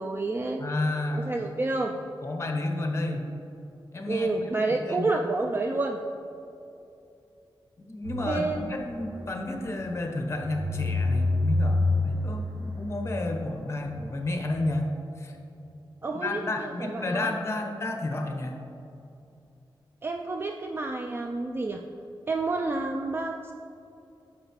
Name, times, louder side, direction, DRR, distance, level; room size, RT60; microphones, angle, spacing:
voice 1, 0.0-0.6 1.1-1.9 4.1-6.0 8.3-8.6 16.0-17.3 20.0-21.8 22.3-23.5, right 3 dB, 25° right, 3 dB, 0.3 m, -29 dB
voice 2, 0.6-1.6 2.2-3.3 3.9-5.1 7.8-15.4 16.1-18.5, left 2 dB, 30° left, 3 dB, 0.9 m, -31 dB
sound 1, 8.0-14.6, left 2 dB, 85° right, 1.6 m, -29 dB
8.9 x 6.4 x 3.1 m, 2.7 s
wide cardioid pair, 125°, 9 cm